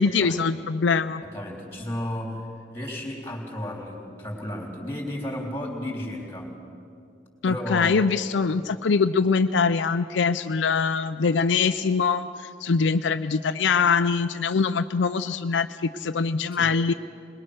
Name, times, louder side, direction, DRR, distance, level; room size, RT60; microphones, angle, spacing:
voice 1, 0.0-1.2 7.4-16.9, left 5 dB, 75° left, 10 dB, 0.5 m, -23 dB
voice 2, 1.2-2.5 2.7-6.6 7.4-8.0 16.6-16.7, left 1 dB, 15° left, 0 dB, 3.6 m, -33 dB
21.5 x 21.5 x 6.4 m, 2.4 s
head